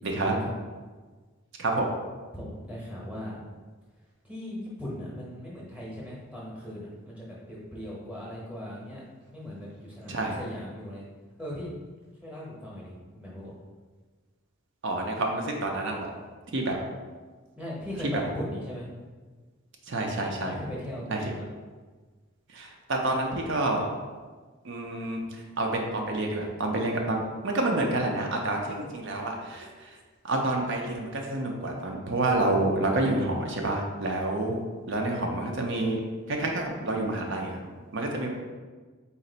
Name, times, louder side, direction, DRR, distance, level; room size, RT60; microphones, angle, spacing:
voice 1, 0.0-0.4 1.6-1.9 10.1-10.4 14.8-16.2 16.5-16.8 19.9-20.5 21.1-21.2 22.5-23.9 24.6-30.0 30.2-34.6 34.9-36.0 36.3-38.3, right 2 dB, 55° right, 1 dB, 0.5 m, -28 dB
voice 2, 2.3-3.4 4.2-9.0 9.3-11.0 11.4-11.7 12.2-13.5 17.6-18.9 20.4-21.5, left 1 dB, 5° right, -6 dB, 0.9 m, -38 dB
4.1 x 2.5 x 3.8 m, 1.4 s
head